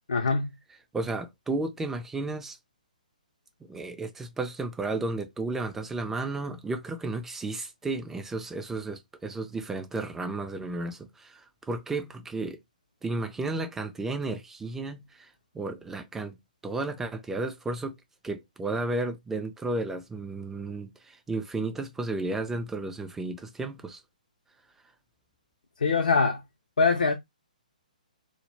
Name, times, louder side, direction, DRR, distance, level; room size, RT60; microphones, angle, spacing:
voice 1, 0.1-0.5 25.8-26.4 26.8-27.1, left 4 dB, 75° left, 0.4 m, -23 dB
voice 2, 0.9-2.6 3.6-12.6 13.0-16.4 16.6-18.0 18.2-24.0, right 2 dB, 5° right, 0.3 m, -33 dB
2.1 x 2.0 x 3.1 m
figure-of-eight pair, 130°, 5 cm